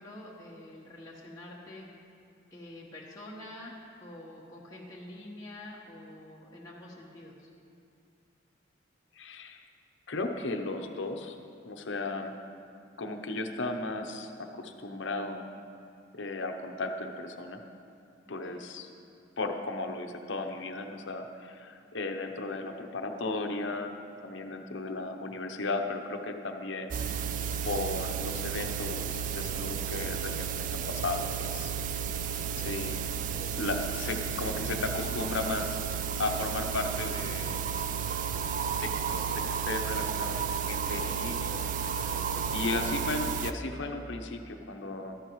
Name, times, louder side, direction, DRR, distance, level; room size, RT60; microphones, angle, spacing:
voice 1, 0.0-1.9 2.5-3.7 4.0-7.5 18.4-18.6 42.1-42.5, left 1 dB, 20° left, -6 dB, 1.1 m, -47 dB
voice 2, 9.2-9.6 10.1-11.4 11.6-12.4 13.0-15.5 16.1-17.6 18.3-18.9 19.4-23.9 24.2-27.3 27.6-31.7 32.6-33.0 33.6-35.8 36.2-37.6 38.8-41.5 42.5-45.2, left 2 dB, 70° left, 5 dB, 0.8 m, -35 dB
sound 1, 26.9-43.5, right 7 dB, 40° right, 0.3 m, -32 dB
14.0 x 13.0 x 3.1 m, 2.6 s
head